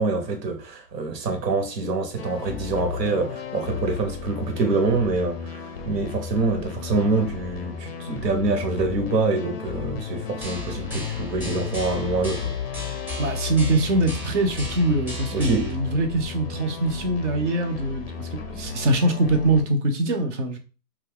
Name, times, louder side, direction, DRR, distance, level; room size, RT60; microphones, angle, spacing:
voice 1, 0.0-12.6 15.3-15.7, right 3 dB, 80° right, 1.0 m, -25 dB
sound 1, 2.2-19.6, left 6 dB, 40° left, 0.4 m, -34 dB
sound 2, 10.4-15.7, left 3 dB, 10° right, 0.7 m, -35 dB
voice 2, 13.2-20.6, right 2 dB, 50° right, 0.6 m, -23 dB
2.6 x 2.3 x 3.4 m
hypercardioid pair, 145°, 49 cm